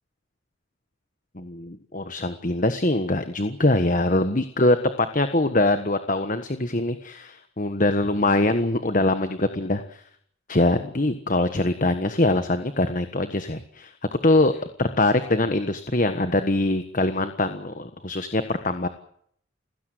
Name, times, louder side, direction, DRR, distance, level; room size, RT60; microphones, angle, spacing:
voice 1, 1.3-10.0 10.5-18.9, left 2 dB, 40° left, 9 dB, 1.4 m, -23 dB
29.0 x 16.5 x 7.9 m, 0.67 s
head